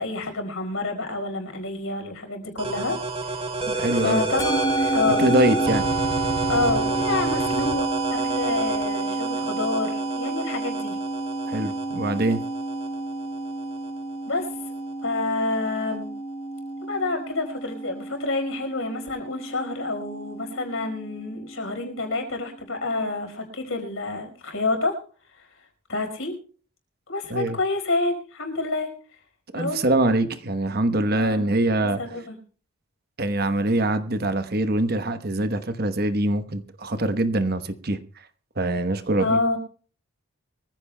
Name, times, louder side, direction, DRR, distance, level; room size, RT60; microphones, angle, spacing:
voice 1, 0.0-3.4 3.9-4.7 4.9-5.2 6.5-7.8 8.1-11.0 14.3-14.5 15.0-16.1 16.8-24.9 25.3-25.5 25.9-26.4 27.1-28.9 29.5-29.8 31.1-31.4 31.8-32.4 39.2-39.6, left 3 dB, 70° left, 4.9 m, -28 dB
sound 1, 2.6-14.0, right 4 dB, 25° right, 3.2 m, -30 dB
voice 2, 3.7-4.2 5.2-5.9 11.5-12.4 27.3-27.6 29.5-32.0 33.2-38.0 38.6-39.4, right 1 dB, 45° right, 1.1 m, -23 dB
Musical instrument, 4.4-22.9, right 2 dB, 20° left, 4.5 m, -30 dB
24.0 x 15.0 x 2.3 m
head